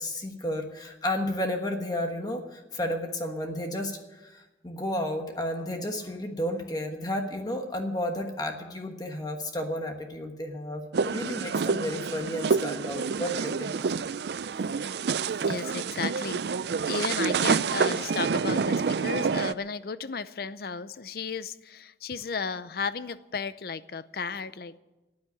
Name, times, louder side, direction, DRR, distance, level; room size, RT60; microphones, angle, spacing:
voice 1, 0.0-13.8, left 1 dB, 20° left, 1.3 m, -32 dB
sound 1, 10.9-19.5, right 5 dB, 65° right, 0.4 m, -28 dB
voice 2, 15.5-24.8, left 5 dB, 55° left, 0.6 m, -34 dB
13.5 x 9.5 x 9.8 m
head